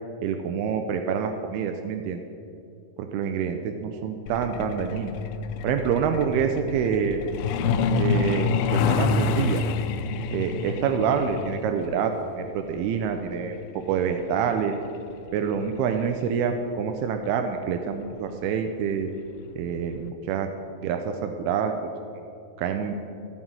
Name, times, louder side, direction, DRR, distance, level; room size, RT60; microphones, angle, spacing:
voice 1, 0.2-2.2 3.0-5.1 5.6-7.2 7.9-9.6 10.3-13.6 13.9-14.8 15.3-19.1 19.6-20.5 20.8-21.8 22.6-22.9, right 7 dB, 85° right, 5 dB, 2.5 m, -27 dB
Truck, 4.3-16.6 17.8-18.0 18.3-18.5 18.9-19.2 19.5-19.6 20.1-20.2, left 5 dB, 85° left, 1.9 m, -28 dB
15.0 x 6.2 x 9.0 m, 2.6 s
omnidirectional pair, 4.6 m